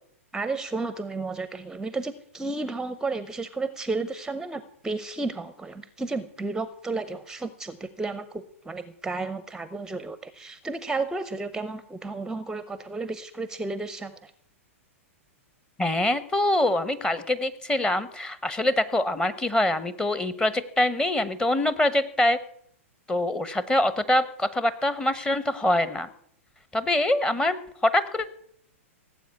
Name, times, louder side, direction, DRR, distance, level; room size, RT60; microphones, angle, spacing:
voice 1, 0.3-14.3, right 3 dB, 10° right, 13 dB, 0.7 m, -32 dB
voice 2, 15.8-22.4 23.1-26.1 26.7-28.3, left 1 dB, 10° left, 14 dB, 1.0 m, -24 dB
17.5 x 8.1 x 8.2 m, 0.70 s
hypercardioid pair, 110°, 8 cm